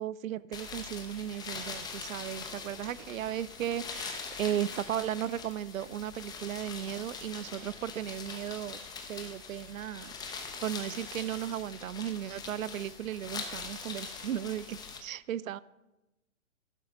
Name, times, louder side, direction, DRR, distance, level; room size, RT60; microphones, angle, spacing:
voice 1, 0.0-8.8 9.1-10.1 10.6-15.6, right 11 dB, 80° right, 20 dB, 0.5 m, -36 dB
sound 1, 0.5-15.0, left 5 dB, 10° left, 0.9 m, -43 dB
11.5 x 11.0 x 3.9 m, 1.0 s
hypercardioid pair, 135°, 39 cm